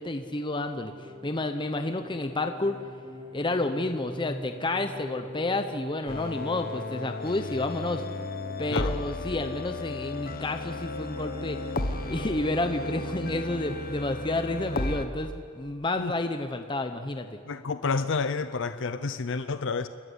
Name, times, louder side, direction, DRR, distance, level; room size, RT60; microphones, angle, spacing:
voice 1, 0.0-2.8 3.3-8.0 8.6-11.6 12.1-17.4, left 2 dB, 25° left, 7 dB, 0.8 m, -30 dB
sound 1, 0.9-13.9, left 1 dB, 25° right, 3.5 m, -44 dB
sound 2, 6.1-15.1, left 2 dB, 45° left, 1.2 m, -34 dB
voice 2, 17.4-19.9, left 4 dB, 60° left, 11 dB, 0.7 m, -29 dB
28.5 x 13.5 x 9.9 m, 2.3 s
head